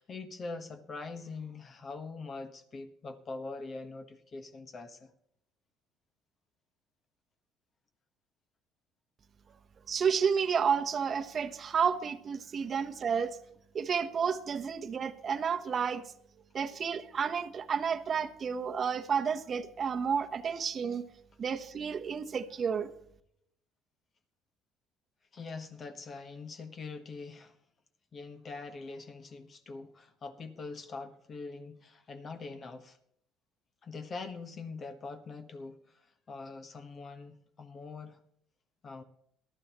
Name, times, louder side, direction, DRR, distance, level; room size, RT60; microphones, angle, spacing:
voice 1, 0.0-5.1 12.6-12.7 25.3-27.6 28.1-33.0 33.8-38.2 38.8-39.0, left 3 dB, 35° left, 1.3 m, -43 dB
voice 2, 9.9-13.4 13.7-16.0 16.5-21.0 21.4-22.9, right 6 dB, 40° right, 1.0 m, -31 dB
19.0 x 12.5 x 3.0 m
cardioid pair, 115°, 0 cm